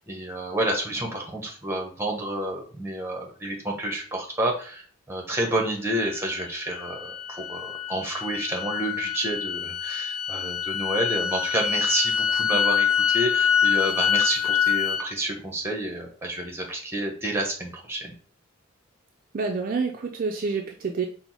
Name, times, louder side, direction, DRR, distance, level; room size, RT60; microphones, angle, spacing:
voice 1, 0.0-4.8 5.1-18.1, right 1 dB, 10° right, 1 dB, 0.8 m, -29 dB
sound 1, 5.9-15.1, left 8 dB, 75° left, 0.4 m, -26 dB
voice 2, 19.3-21.1, right 4 dB, 40° right, 2 dB, 0.4 m, -28 dB
4.4 x 2.1 x 4.0 m, 0.43 s
head